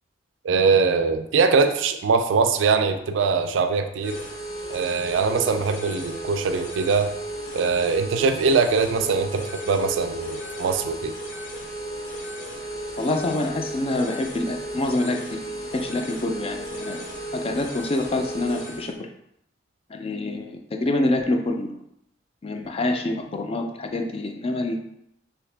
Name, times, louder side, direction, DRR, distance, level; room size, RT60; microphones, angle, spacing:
voice 1, 0.4-4.2 4.7-7.1 7.5-11.1, right 4 dB, 80° right, 7 dB, 0.4 m, -22 dB
sound 1, 4.0-18.9, right 1 dB, 75° left, 0.8 m, -34 dB
voice 2, 13.0-17.0 17.3-18.9 19.9-21.8 22.4-24.7, left 2 dB, 30° left, 4 dB, 0.4 m, -26 dB
3.3 x 2.8 x 3.3 m, 0.77 s
head